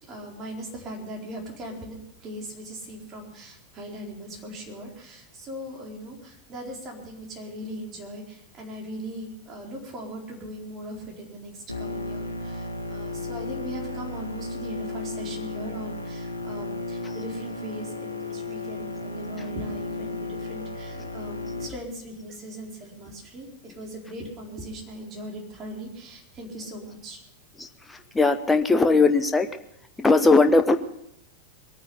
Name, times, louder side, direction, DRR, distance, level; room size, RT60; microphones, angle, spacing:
voice 1, 0.0-27.2, right 1 dB, 30° right, 0 dB, 4.2 m, -39 dB
sound 1, 11.7-21.7, left 2 dB, 85° left, 1.5 m, -34 dB
voice 2, 28.1-29.5 30.0-30.8, left 3 dB, 10° left, 9 dB, 0.8 m, -18 dB
22.0 x 9.6 x 5.6 m, 0.75 s
figure-of-eight pair, 90°, 0 cm